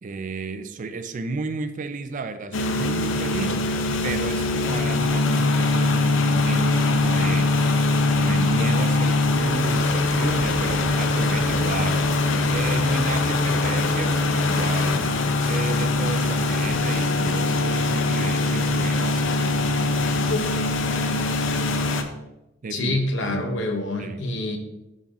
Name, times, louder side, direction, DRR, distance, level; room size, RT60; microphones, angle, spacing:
voice 1, 0.0-12.0 12.5-15.1 15.4-19.3 22.6-23.5 24.0-24.3, right 3 dB, 45° right, 10 dB, 0.4 m, -33 dB
sound 1, 2.5-22.0, left 2 dB, 85° left, 0.6 m, -22 dB
voice 2, 22.7-24.6, left 2 dB, 70° left, 4 dB, 0.9 m, -26 dB
11.0 x 3.9 x 2.5 m, 0.96 s
head